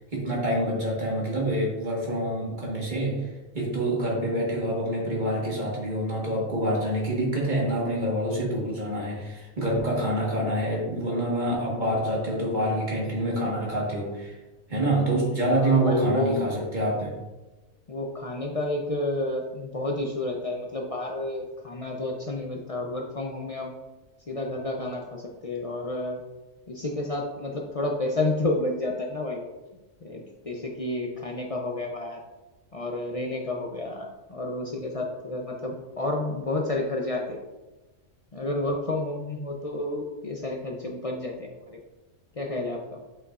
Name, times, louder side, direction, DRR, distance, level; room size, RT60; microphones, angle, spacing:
voice 1, 0.1-3.3 3.5-14.4 14.7-17.1, right 1 dB, 35° right, -3 dB, 1.7 m, -26 dB
voice 2, 15.5-16.5 17.9-23.7 24.3-26.2 26.7-29.5 30.0-32.2 32.7-37.4 38.3-41.8 42.4-42.8, left 2 dB, 40° left, 0 dB, 0.5 m, -30 dB
8.2 x 5.3 x 2.5 m, 1.1 s
omnidirectional pair, 1.4 m